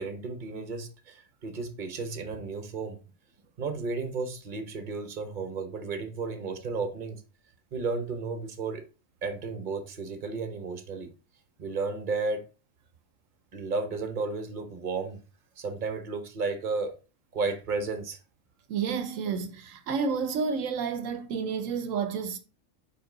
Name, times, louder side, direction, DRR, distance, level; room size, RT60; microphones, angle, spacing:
voice 1, 0.0-3.0 3.6-7.2 7.7-8.8 9.2-11.1 11.6-12.4 13.5-15.2 15.6-17.0 17.3-18.2, right 4 dB, 40° right, 1.1 m, -33 dB
voice 2, 18.7-22.4, right 5 dB, 80° right, 1.1 m, -30 dB
5.2 x 5.1 x 3.9 m
omnidirectional pair, 1.3 m